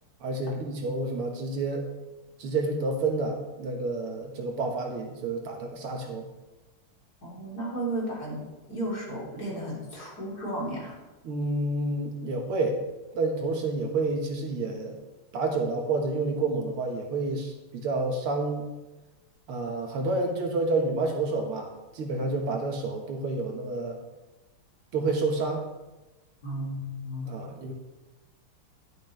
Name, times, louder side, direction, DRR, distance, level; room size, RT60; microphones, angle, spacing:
voice 1, 0.2-1.9 2.4-6.3 11.2-12.8 13.1-15.0 15.3-18.7 19.5-24.0 24.9-25.6 27.3-27.7, right 3 dB, 85° right, 2 dB, 2.3 m, -29 dB
voice 2, 7.2-8.4 8.7-11.0 26.4-27.3, right 1 dB, 45° left, -6 dB, 3.8 m, -34 dB
10.5 x 10.5 x 3.3 m, 1.1 s
omnidirectional pair, 2.4 m